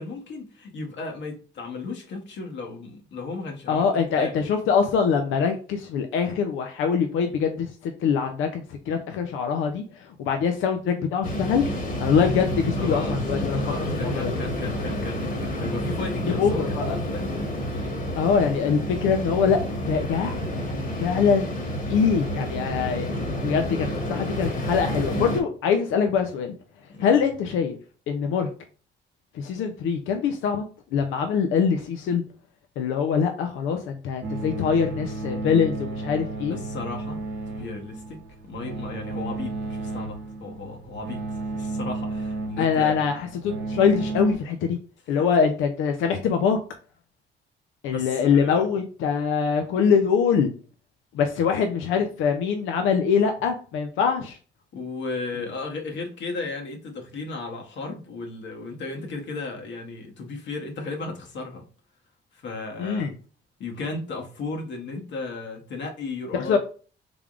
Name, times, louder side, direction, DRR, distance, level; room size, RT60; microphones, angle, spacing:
voice 1, 0.0-4.3 12.8-13.1 13.6-17.3 26.9-27.2 36.5-37.2 37.5-43.1 45.1-45.3 47.9-48.7 54.7-61.7 62.3-63.1 63.6-66.6, left 3 dB, 65° left, 2 dB, 1.0 m, -35 dB
voice 2, 3.7-11.6 12.0-13.6 14.0-14.3 16.3-17.0 18.2-20.4 21.0-21.5 21.9-26.5 27.0-27.8 28.1-28.5 29.3-30.6 30.9-32.2 32.8-36.6 42.6-44.8 45.1-46.6 47.8-50.5 51.1-54.4 62.8-63.1 66.3-66.6, left 6 dB, 90° left, 5 dB, 0.5 m, -23 dB
sound 1, 11.2-25.4, equal, 45° left, 1.2 m, -29 dB
sound 2, 34.2-44.3, right 2 dB, 75° right, 0.8 m, -33 dB
3.5 x 3.4 x 2.4 m, 0.38 s
cardioid pair, 90°, 20 cm